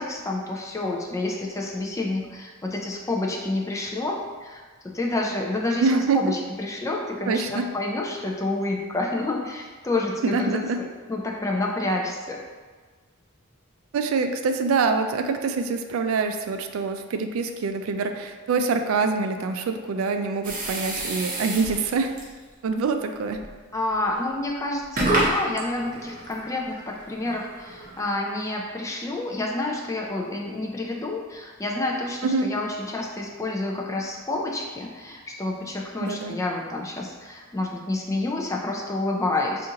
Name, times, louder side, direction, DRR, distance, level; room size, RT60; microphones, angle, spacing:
voice 1, 0.0-4.6 4.9-12.4 23.7-39.7, left 2 dB, 15° left, -1 dB, 0.3 m, -29 dB
voice 2, 5.8-6.2 7.3-7.7 10.2-10.8 13.9-22.1 22.6-23.4 32.2-32.6 36.0-36.4, right 4 dB, 80° right, 7 dB, 0.3 m, -25 dB
sound 1, 20.4-22.4 23.3-23.5 24.1-24.2 24.8-28.0, right 1 dB, 40° right, 0.7 m, -29 dB
3.8 x 2.5 x 2.8 m, 1.4 s
head